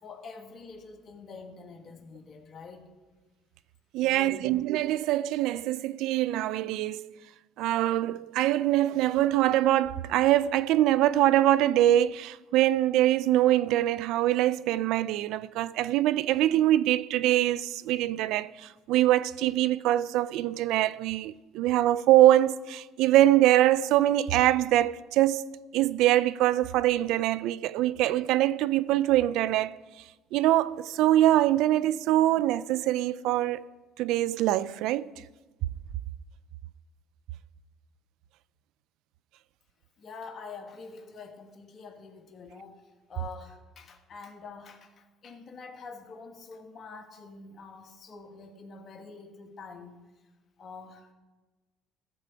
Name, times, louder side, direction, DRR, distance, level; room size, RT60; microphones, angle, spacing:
voice 1, 0.0-2.9 4.0-4.6 40.0-50.1 50.6-51.1, left 4 dB, 45° left, 1.6 m, -46 dB
voice 2, 3.9-7.0 7.6-25.5 25.7-29.8 30.3-33.7 34.0-35.1, right 14 dB, 75° right, 0.3 m, -24 dB
14.5 x 5.0 x 6.8 m
supercardioid pair, 75°, 0 cm